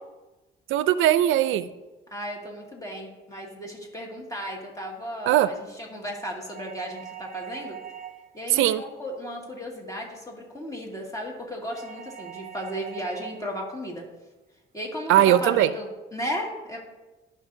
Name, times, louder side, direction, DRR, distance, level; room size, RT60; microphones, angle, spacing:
voice 1, 0.7-1.7 5.3-5.5 8.5-8.8 15.1-15.7, right 12 dB, 85° right, 14 dB, 0.4 m, -19 dB
voice 2, 2.1-7.8 8.3-14.0 14.7-16.8, equal, 15° left, -1 dB, 2.2 m, -35 dB
sound 1, 6.5-8.4 11.7-13.5, right 9 dB, 50° right, 0.8 m, -42 dB
14.5 x 5.6 x 2.7 m, 1.1 s
cardioid pair, 90°, 20 cm